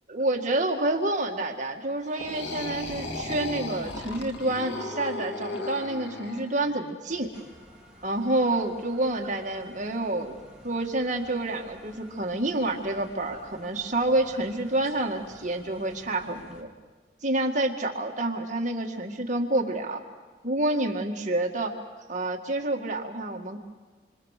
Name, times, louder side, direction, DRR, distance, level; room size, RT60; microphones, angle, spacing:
voice 1, 0.1-7.3 8.0-10.4 10.6-16.7 17.2-20.0 20.4-21.7 22.1-23.6, right 2 dB, 40° right, 2 dB, 1.9 m, -28 dB
sound 1, 2.0-6.8, left 2 dB, 75° left, 2.0 m, -36 dB
sound 2, 7.1-16.6, right 1 dB, 5° right, 3.8 m, -52 dB
27.5 x 25.0 x 6.6 m, 1.4 s
head